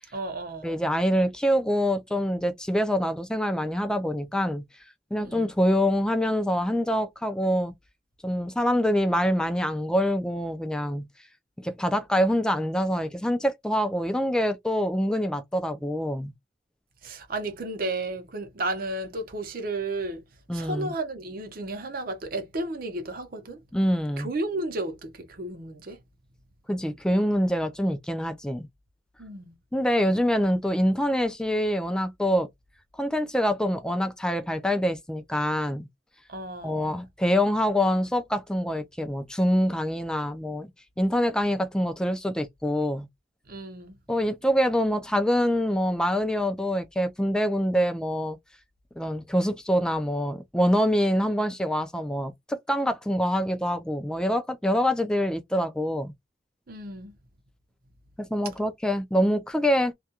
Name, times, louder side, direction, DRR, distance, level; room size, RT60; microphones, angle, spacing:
voice 1, 0.1-0.7 5.2-5.5 17.0-20.2 20.5-23.6 24.2-26.0 29.2-29.5 36.3-37.0 43.5-44.0 56.7-57.1, right 2 dB, 50° right, 0.7 m, -33 dB
voice 2, 0.6-4.6 5.1-7.7 8.2-11.1 11.6-16.3 20.5-20.9 23.7-24.3 26.7-28.7 29.7-32.5 33.0-35.9 36.6-40.7 41.0-43.1 44.1-48.4 49.0-56.1 58.2-59.9, equal, 5° left, 0.3 m, -25 dB
2.3 x 2.2 x 2.8 m
head